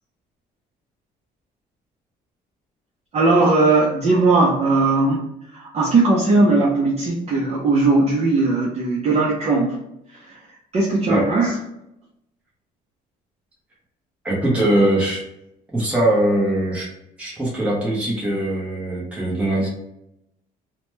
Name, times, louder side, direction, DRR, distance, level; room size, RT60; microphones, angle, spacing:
voice 1, 3.1-5.2 5.5-9.8 10.1-11.5, right 3 dB, 40° right, -4 dB, 0.6 m, -18 dB
voice 2, 14.2-15.2 15.7-16.9 17.2-19.7, right 1 dB, 10° right, -6 dB, 0.8 m, -21 dB
2.8 x 2.2 x 3.1 m, 0.84 s
cardioid pair, 110°, 17 cm